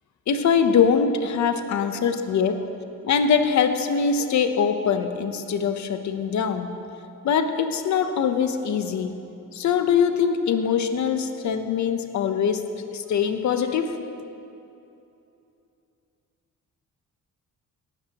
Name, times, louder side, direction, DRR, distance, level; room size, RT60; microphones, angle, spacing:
voice 1, 0.3-6.8 7.2-9.2 9.5-14.0, left 6 dB, 60° left, 8 dB, 0.8 m, -23 dB
17.5 x 12.5 x 3.0 m, 2.8 s
cardioid pair, 135°, 32 cm